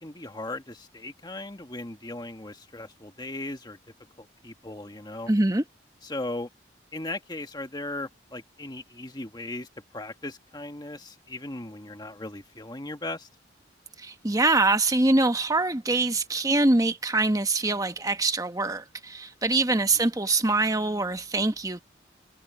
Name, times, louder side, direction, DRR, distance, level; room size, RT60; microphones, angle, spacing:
voice 1, 0.0-3.8 4.2-5.3 6.0-6.5 6.9-13.3, left 2 dB, 20° left, 1.6 m, -37 dB
voice 2, 5.3-5.6 14.0-21.8, right 2 dB, 20° right, 1.1 m, -24 dB
head